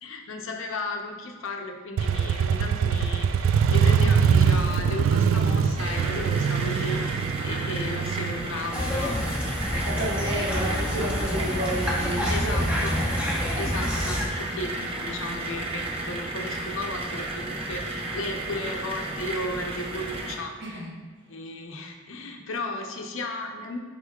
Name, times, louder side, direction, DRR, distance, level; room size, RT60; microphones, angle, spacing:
voice 1, 0.0-10.1 12.3-13.0 13.5-20.8 21.3-23.8, left 2 dB, 85° left, 3 dB, 0.7 m, -35 dB
Motorcycle, 2.0-9.6, right 6 dB, 90° right, 0.3 m, -23 dB
sound 1, 5.8-20.4, right 2 dB, 30° right, 0.6 m, -33 dB
sound 2, 8.7-14.3, equal, 5° right, 1.0 m, -28 dB
voice 2, 9.8-13.3 20.6-21.0, right 1 dB, 60° right, -2 dB, 1.1 m, -31 dB
8.1 x 5.1 x 2.3 m, 1.4 s
head